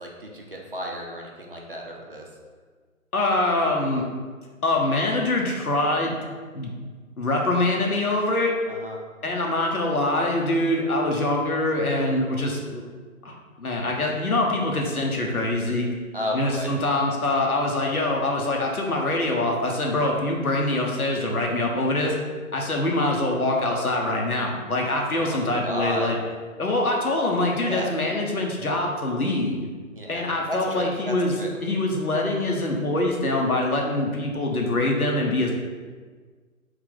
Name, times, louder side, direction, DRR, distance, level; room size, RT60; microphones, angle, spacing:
voice 1, 0.0-2.2 8.7-9.0 16.1-16.7 25.1-26.1 27.6-27.9 29.9-31.6, equal, 40° right, -1 dB, 0.5 m, -33 dB
voice 2, 3.1-4.0 4.6-6.2 6.5-6.7 7.2-8.5 9.2-12.8 13.2-15.9 16.3-22.1 22.5-26.2 26.6-29.7 30.1-31.4 31.6-35.6, left 2 dB, 90° left, 0 dB, 0.9 m, -24 dB
3.2 x 2.8 x 3.7 m, 1.5 s
figure-of-eight pair, 150°, 43 cm